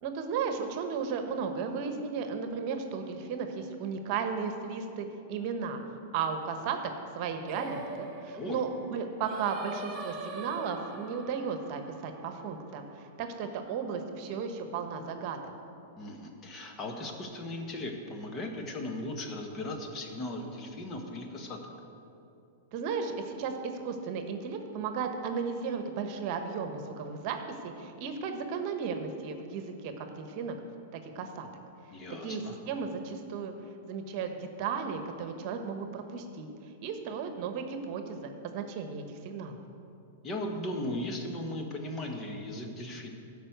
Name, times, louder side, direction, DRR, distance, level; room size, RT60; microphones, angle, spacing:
voice 1, 0.0-5.8 6.1-6.8 7.1-12.8 13.2-15.4 22.7-30.6 30.9-31.5 32.2-33.5 33.9-36.5 36.8-39.6, right 6 dB, 50° right, 6 dB, 1.1 m, -35 dB
Singing, 7.5-12.8, right 2 dB, 30° right, 2.4 m, -43 dB
voice 2, 16.0-21.7 31.9-32.6 40.2-43.1, left 1 dB, 30° left, 2 dB, 1.6 m, -37 dB
12.5 x 5.4 x 8.0 m, 2.7 s
hypercardioid pair, 110°, 0 cm